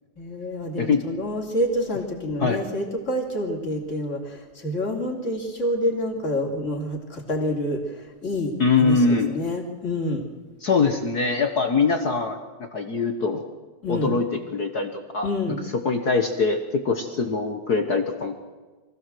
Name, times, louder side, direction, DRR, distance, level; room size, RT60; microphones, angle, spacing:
voice 1, 0.2-7.8 8.2-8.5 8.8-10.2 13.8-14.1 15.2-15.6, left 1 dB, 25° left, 2 dB, 3.2 m, -27 dB
voice 2, 8.6-9.3 10.6-13.4 13.9-18.4, left 4 dB, 60° left, 6 dB, 1.0 m, -23 dB
24.0 x 16.0 x 7.7 m, 1.3 s
omnidirectional pair, 3.6 m